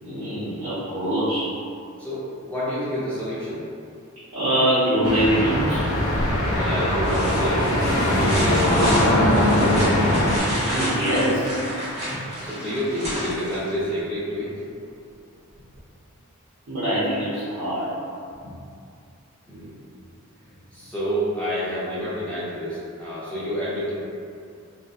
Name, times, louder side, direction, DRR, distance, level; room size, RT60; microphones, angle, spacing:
voice 1, 0.0-1.5 4.3-5.8 10.6-11.5 16.7-17.9, right 1 dB, 65° right, -13 dB, 0.6 m, -23 dB
voice 2, 2.0-3.6 6.5-7.7 8.0-10.1 12.1-14.7 18.4-18.5 19.5-19.7 20.4-23.9, equal, 5° left, -11 dB, 0.5 m, -29 dB
sound 1, 5.0-10.4, left 1 dB, 80° left, 0.5 m, -21 dB
sound 2, 6.2-6.6 7.0-14.0 15.8-15.9, equal, 30° right, 0.9 m, -31 dB
2.6 x 2.1 x 2.3 m, 2.4 s
head